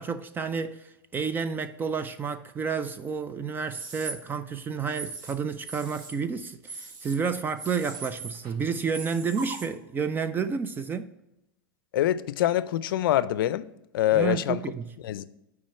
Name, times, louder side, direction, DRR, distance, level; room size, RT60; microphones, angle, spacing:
voice 1, 0.0-11.1 14.1-14.9, right 6 dB, 15° right, 0.3 m, -30 dB
sound 1, 3.6-4.1 4.9-5.3 5.6-6.1 6.6-7.2 7.6-8.5 8.9-9.7, right 4 dB, 40° right, 1.4 m, -39 dB
voice 2, 11.9-13.7 13.9-14.6 15.0-15.2, left 13 dB, 75° left, 0.4 m, -25 dB
7.3 x 4.8 x 5.6 m
hypercardioid pair, 130°, 12 cm